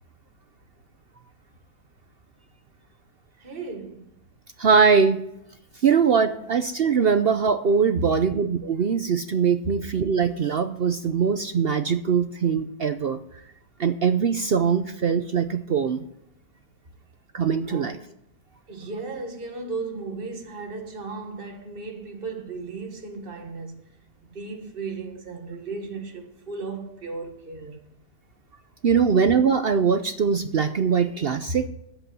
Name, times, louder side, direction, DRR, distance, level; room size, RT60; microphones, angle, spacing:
voice 1, 3.4-4.1 8.0-8.1 17.7-18.0 18.7-23.8 24.2-27.8 31.5-31.6, right 3 dB, 35° right, 1.8 m, -35 dB
voice 2, 4.6-5.2 5.8-13.2 13.8-16.0 17.3-18.0 28.8-31.7, right 6 dB, 70° right, 0.5 m, -22 dB
11.0 x 8.2 x 7.6 m
omnidirectional pair, 1.8 m